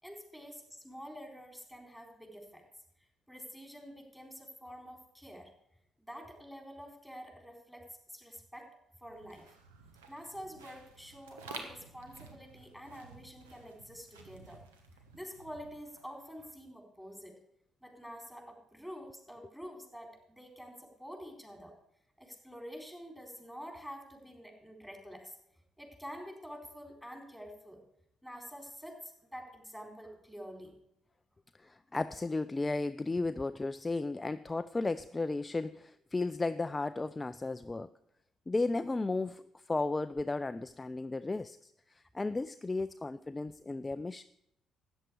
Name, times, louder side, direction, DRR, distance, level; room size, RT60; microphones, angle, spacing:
voice 1, 0.0-2.6 3.3-5.5 6.0-8.7 9.0-9.6 10.1-14.6 15.1-17.4 17.8-21.7 22.2-25.4 25.8-27.8 28.2-30.8, equal, 5° right, 2 dB, 4.0 m, -48 dB
sound 1, 9.1-16.3, right 5 dB, 80° right, 1.3 m, -52 dB
voice 2, 31.6-37.9 38.5-44.2, left 3 dB, 20° left, 12 dB, 0.4 m, -34 dB
13.5 x 9.0 x 4.8 m, 0.80 s
figure-of-eight pair, 45°, 0 cm